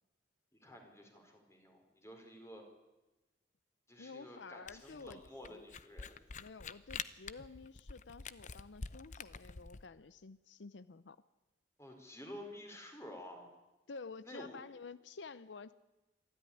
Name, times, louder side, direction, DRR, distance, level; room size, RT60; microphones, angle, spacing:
voice 1, 0.6-2.6 3.9-6.2 11.8-13.5 14.2-14.6, left 1 dB, 15° left, 3 dB, 4.2 m, -51 dB
voice 2, 4.0-5.2 5.5-5.7 6.4-11.2 13.9-15.7, left 4 dB, 85° left, 15 dB, 0.7 m, -51 dB
Camera, 4.7-9.8, left 5 dB, 40° left, 0.7 m, -46 dB
24.5 x 13.5 x 10.0 m, 1.1 s
head